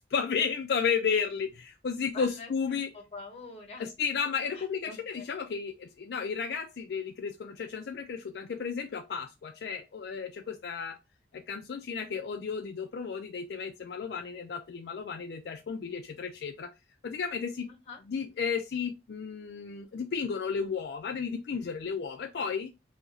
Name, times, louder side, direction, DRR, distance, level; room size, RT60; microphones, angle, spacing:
voice 1, 0.1-2.9 3.8-11.0 11.3-16.7 17.0-17.7 18.1-22.7, left 6 dB, 70° left, 0.4 m, -33 dB
voice 2, 2.1-3.8 4.5-5.3 17.7-18.0, left 3 dB, 35° left, 1.0 m, -46 dB
2.8 x 2.6 x 3.9 m
head